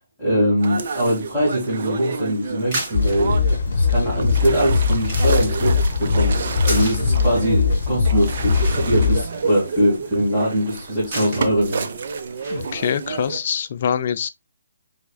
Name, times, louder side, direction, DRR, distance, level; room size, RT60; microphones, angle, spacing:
voice 1, 0.2-3.4 3.7-11.9, equal, ahead, 2.2 m, -22 dB
sound 1, 0.6-13.4, right 5 dB, 50° right, 0.7 m, -30 dB
sound 2, 2.5-13.2, right 2 dB, 30° right, 2.4 m, -36 dB
sound 3, 2.9-9.3, left 4 dB, 65° left, 0.8 m, -20 dB
voice 2, 12.5-14.3, left 8 dB, 45° left, 0.4 m, -24 dB
4.6 x 3.5 x 2.3 m
hypercardioid pair, 160°, 0 cm